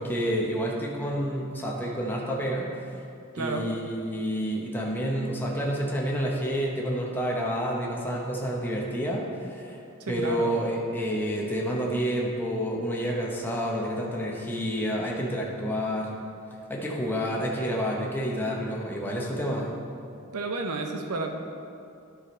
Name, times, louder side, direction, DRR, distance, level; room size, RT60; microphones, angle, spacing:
voice 1, 0.0-2.8 3.4-9.8 10.1-16.2 16.7-19.7, equal, 10° left, -3 dB, 0.8 m, -29 dB
voice 2, 3.3-3.7 10.0-10.6 20.3-21.3, right 3 dB, 80° right, 4 dB, 0.7 m, -31 dB
10.5 x 5.0 x 4.3 m, 2.6 s
head